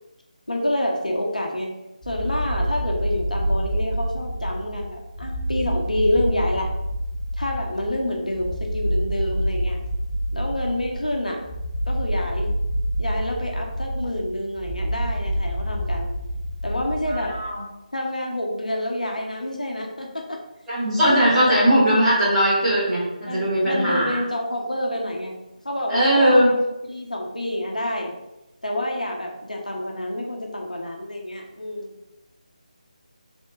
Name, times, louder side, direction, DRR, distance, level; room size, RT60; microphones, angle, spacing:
voice 1, 0.5-1.7 2.0-6.7 7.4-9.8 10.3-11.4 11.9-12.5 13.0-16.1 16.6-17.4 17.9-20.4 21.0-21.6 23.3-25.4 25.6-26.6 26.9-28.1 28.6-31.9, left 1 dB, 75° left, 1 dB, 0.8 m, -28 dB
sound 1, 2.0-17.6, equal, 40° left, 1.0 m, -27 dB
voice 2, 17.1-17.6 20.7-24.2 25.9-26.5, equal, 10° right, -12 dB, 1.5 m, -19 dB
3.6 x 3.5 x 4.0 m, 0.96 s
figure-of-eight pair, 155°, 4 cm